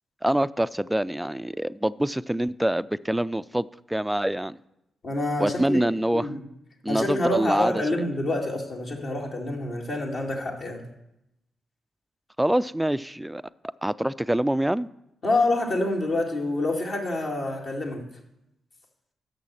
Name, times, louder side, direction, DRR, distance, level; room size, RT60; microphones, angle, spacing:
voice 1, 0.2-4.6 5.4-6.3 6.8-7.8 12.4-13.4 13.8-14.9, right 1 dB, 10° right, 16 dB, 0.3 m, -25 dB
voice 2, 5.0-5.8 6.1-6.4 6.9-10.8 15.2-18.0, left 2 dB, 60° left, -1 dB, 2.1 m, -27 dB
6.5 x 6.2 x 7.4 m, 0.85 s
hypercardioid pair, 45°, 0 cm